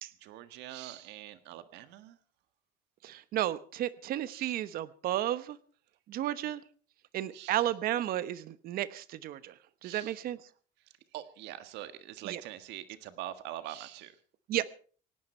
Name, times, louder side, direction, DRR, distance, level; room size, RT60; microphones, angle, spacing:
voice 1, 0.2-2.2 4.3-4.5 7.3-7.5 9.8-10.2 11.1-14.2, right 13 dB, 75° right, 11 dB, 1.6 m, -44 dB
voice 2, 3.0-5.6 6.1-6.6 7.1-9.5 9.8-10.4 12.2-12.4 14.5-14.7, right 13 dB, 55° right, 15 dB, 1.1 m, -33 dB
18.0 x 17.5 x 4.4 m, 0.43 s
cardioid pair, 140°, 18 cm